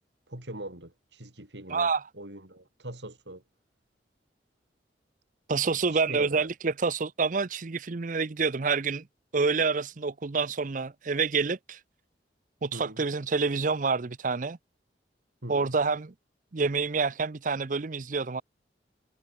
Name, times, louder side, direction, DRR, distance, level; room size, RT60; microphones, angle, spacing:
voice 1, 0.3-3.4 5.6-6.5 12.7-13.1 15.4-15.8, right 1 dB, 75° right, 5.6 m, -42 dB
voice 2, 1.7-2.0 5.5-9.0 9.3-11.8 12.6-14.6 15.5-16.1 16.5-18.4, right 4 dB, 45° right, 0.6 m, -27 dB
head